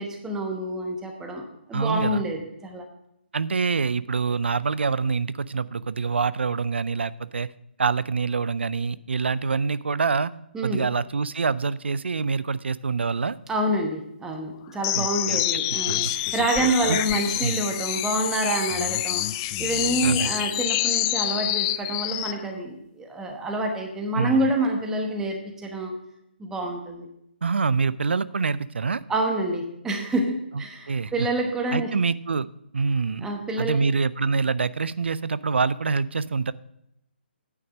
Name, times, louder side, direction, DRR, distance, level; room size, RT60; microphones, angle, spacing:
voice 1, 0.0-2.8 10.5-10.8 13.5-25.9 26.4-27.1 29.1-31.9 33.2-33.8, right 1 dB, 10° right, 2 dB, 1.0 m, -27 dB
voice 2, 1.7-2.2 3.3-7.5 7.8-10.3 10.6-13.4 14.9-15.4 15.7-16.1 16.9-17.6 20.0-20.3 24.1-24.5 27.4-29.0 30.9-31.3 31.7-32.5 32.7-33.3 33.6-36.5, right 5 dB, 75° right, 18 dB, 0.4 m, -26 dB
sound 1, 14.8-22.4, left 15 dB, 25° left, 0.3 m, -27 dB
9.5 x 5.8 x 6.2 m, 0.80 s
figure-of-eight pair, 145°, 6 cm